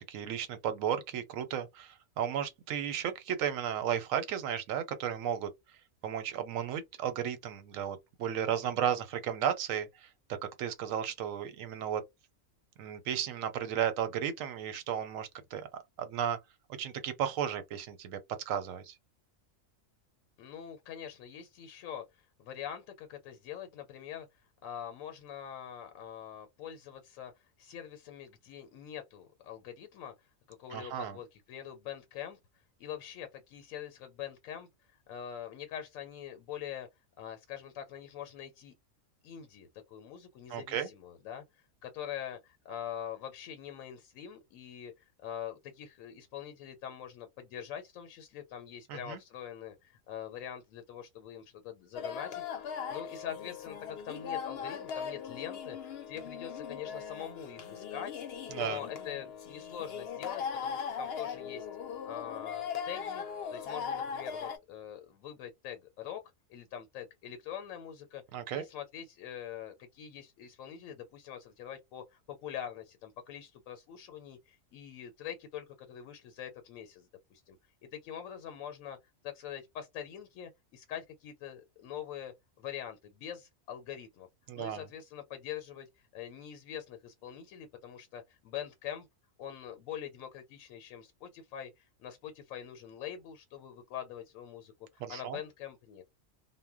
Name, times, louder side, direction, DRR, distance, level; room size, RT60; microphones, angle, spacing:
voice 1, 0.1-5.5 6.0-10.1 10.6-12.0 12.8-15.7 16.0-16.4 16.8-18.2 18.5-18.9 30.7-31.2 40.5-40.9 48.9-49.2 58.5-58.8 68.3-68.6 84.5-84.9 95.0-95.4, right 9 dB, 90° right, 1.0 m, -34 dB
voice 2, 20.4-24.3 24.6-30.1 30.5-32.4 32.8-34.7 35.1-36.9 37.2-38.7 39.2-41.4 41.8-58.1 58.5-61.7 62.0-63.2 63.5-66.2 66.5-68.2 68.5-77.6 77.8-79.0 79.2-84.3 84.5-89.1 89.4-96.0, left 9 dB, 85° left, 1.0 m, -44 dB
sound 1, 52.0-64.6, left 7 dB, 60° left, 0.7 m, -39 dB
2.1 x 2.1 x 3.5 m
omnidirectional pair, 1.4 m